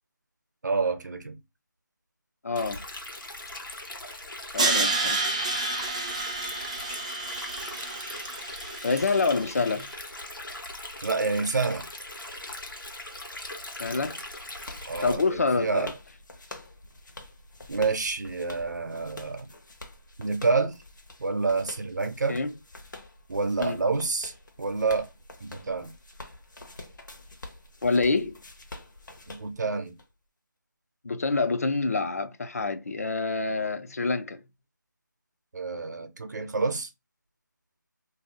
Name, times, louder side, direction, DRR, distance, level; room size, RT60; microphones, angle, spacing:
voice 1, 0.6-1.4 11.0-11.8 14.9-16.0 17.7-19.5 20.2-20.8 21.2-22.4 23.3-24.3 24.6-25.1 25.4-25.9 29.3-29.9 35.5-36.9, right 4 dB, 60° right, 0.7 m, -28 dB
voice 2, 2.4-2.8 4.5-5.4 8.8-9.9 13.8-14.2 15.0-15.9 22.3-22.5 23.6-23.8 27.8-28.4 31.0-34.4, left 3 dB, 50° left, 0.4 m, -27 dB
Stream, 2.5-15.1, left 1 dB, 85° left, 1.1 m, -40 dB
Crash cymbal, 4.6-9.6, right 3 dB, 20° right, 0.4 m, -30 dB
sound 1, 13.5-30.0, left 2 dB, 65° left, 0.9 m, -46 dB
2.6 x 2.3 x 3.8 m
figure-of-eight pair, 165°, 11 cm